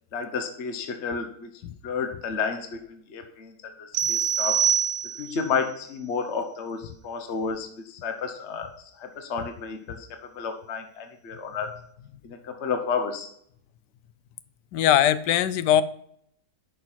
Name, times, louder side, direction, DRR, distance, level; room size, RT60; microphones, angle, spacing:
voice 1, 0.1-1.5 1.8-4.7 5.2-10.1 10.3-11.7 12.2-13.3, left 5 dB, 45° left, 6 dB, 1.3 m, -31 dB
sound 1, 3.9-5.5, right 8 dB, 85° right, 1.3 m, -24 dB
voice 2, 14.7-15.8, left 11 dB, 85° left, 15 dB, 1.2 m, -20 dB
10.0 x 6.1 x 4.4 m, 0.67 s
omnidirectional pair, 1.8 m